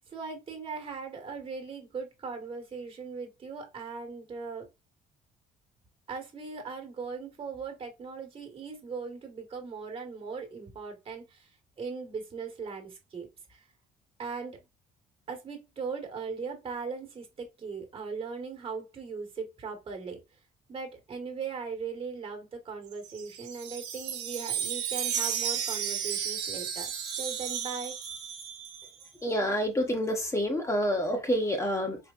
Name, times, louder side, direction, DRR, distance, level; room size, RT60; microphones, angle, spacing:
voice 1, 0.1-4.7 6.1-11.5 11.8-13.6 14.2-14.7 15.3-20.2 20.7-26.9 27.2-28.0, right 5 dB, 35° right, 1.6 m, -39 dB
Wind chime, 22.9-29.1, right 8 dB, 85° right, 1.0 m, -34 dB
voice 2, 29.2-32.0, equal, 15° left, 1.2 m, -28 dB
4.6 x 3.2 x 2.5 m
cardioid pair, 110°, 17 cm